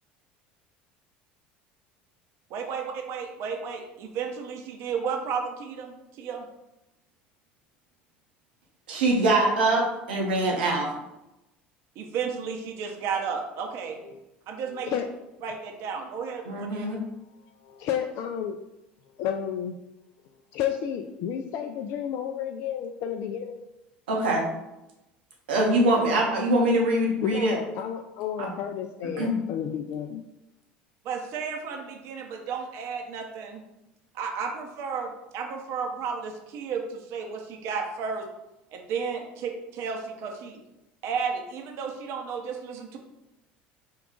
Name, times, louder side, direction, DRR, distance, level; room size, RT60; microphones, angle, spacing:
voice 1, 2.5-6.5 12.0-14.0 14.5-15.0 15.4-16.9 31.0-33.7 34.1-38.3 38.7-40.6 41.0-43.0, right 6 dB, 60° right, 3 dB, 0.8 m, -33 dB
voice 2, 8.9-10.9 16.5-17.0 24.1-24.4 25.5-27.6 28.4-28.5 29.2-29.4, right 1 dB, 85° right, -2 dB, 1.0 m, -23 dB
voice 3, 17.6-18.6 19.2-19.7 20.5-23.6 27.2-30.2, left 9 dB, 60° left, 4 dB, 0.3 m, -31 dB
4.6 x 2.4 x 3.7 m, 0.93 s
hypercardioid pair, 75°, 5 cm